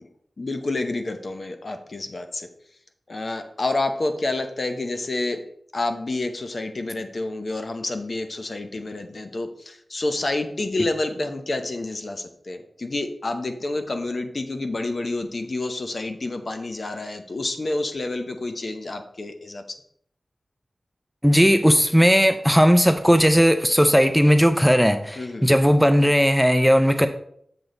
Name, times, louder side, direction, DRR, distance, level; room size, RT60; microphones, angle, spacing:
voice 1, 0.4-2.5 3.1-5.4 5.7-19.6 25.2-25.5, left 2 dB, 50° left, 6 dB, 0.8 m, -29 dB
voice 2, 21.2-27.1, equal, ahead, 9 dB, 0.4 m, -17 dB
6.9 x 6.2 x 3.8 m, 0.67 s
wide cardioid pair, 100°, 0 cm